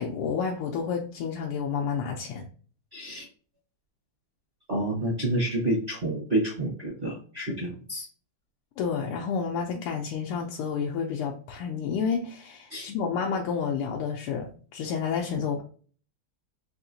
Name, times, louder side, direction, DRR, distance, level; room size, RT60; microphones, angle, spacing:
voice 1, 0.0-2.4 8.8-15.6, left 6 dB, 90° left, 1 dB, 1.5 m, -30 dB
voice 2, 2.9-3.2 4.7-8.1 12.7-12.9, right 1 dB, 45° right, -4 dB, 0.7 m, -29 dB
4.2 x 2.8 x 2.6 m, 0.42 s
omnidirectional pair, 2.4 m